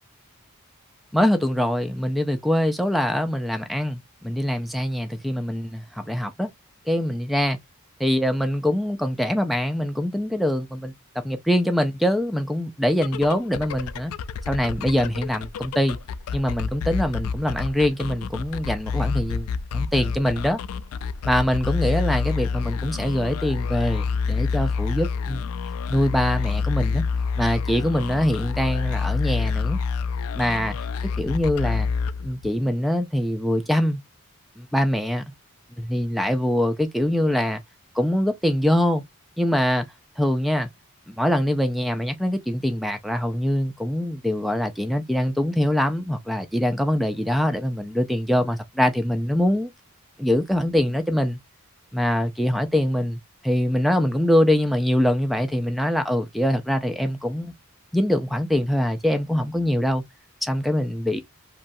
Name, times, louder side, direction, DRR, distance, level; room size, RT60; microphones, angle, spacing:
voice 1, 1.1-6.5 6.9-7.6 8.0-10.9 11.2-14.1 14.5-16.0 16.3-19.5 19.7-20.6 21.2-25.4 25.9-27.0 27.4-29.8 30.3-30.8 31.2-31.9 32.2-34.0 34.6-35.2 35.8-37.6 37.9-39.0 39.4-39.9 40.2-40.7 41.1-49.7 50.2-51.4 51.9-57.5 57.9-60.0 60.4-61.2, equal, ahead, 0.4 m, -23 dB
sound 1, 13.0-32.7, left 5 dB, 75° left, 0.3 m, -28 dB
3.0 x 2.3 x 2.5 m
head